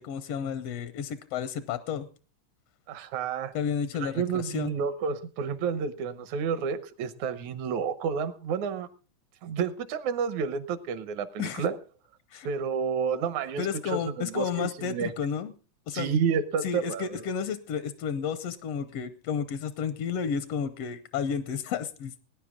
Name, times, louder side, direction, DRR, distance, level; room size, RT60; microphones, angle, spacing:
voice 1, 0.0-2.1 3.5-4.7 11.4-11.7 12.3-12.5 13.6-15.5 15.9-16.1 16.6-22.2, left 7 dB, 75° left, 12 dB, 1.4 m, -32 dB
voice 2, 2.9-3.5 3.9-8.9 9.4-11.8 12.4-15.1 15.9-17.0, right 6 dB, 75° right, 12 dB, 2.2 m, -30 dB
20.0 x 10.0 x 3.6 m, 0.36 s
omnidirectional pair, 3.6 m